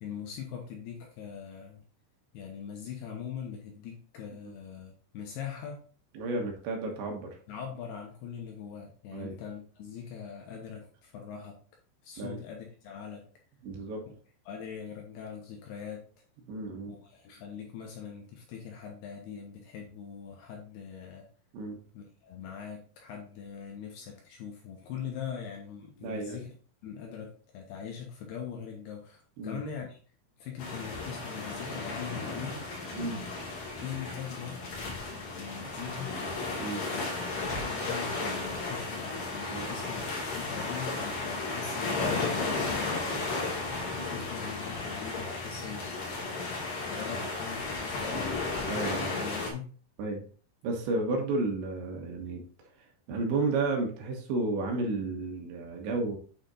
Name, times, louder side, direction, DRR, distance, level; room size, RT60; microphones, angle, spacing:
voice 1, 0.0-1.8 2.3-5.8 7.5-11.6 12.0-13.2 14.5-16.0 16.9-21.3 21.9-26.5 26.8-30.0 30.4-32.6 33.8-36.2 36.9-43.0 43.9-45.9 46.2-48.3 49.1-49.7, left 7 dB, 70° left, 1 dB, 2.6 m, -42 dB
voice 2, 6.2-7.4 9.1-9.3 12.2-12.4 13.6-14.0 16.5-16.9 21.5-21.8 26.0-26.4 29.4-29.6 32.9-33.3 36.6-36.9 39.5-39.7 47.1-47.3 48.7-49.1 50.0-50.2 50.6-52.5 52.8-56.2, right 3 dB, 75° right, 2 dB, 3.5 m, -32 dB
sound 1, 30.6-49.5, left 3 dB, 55° left, 2.7 m, -34 dB
8.7 x 5.9 x 2.5 m, 0.40 s
omnidirectional pair, 5.5 m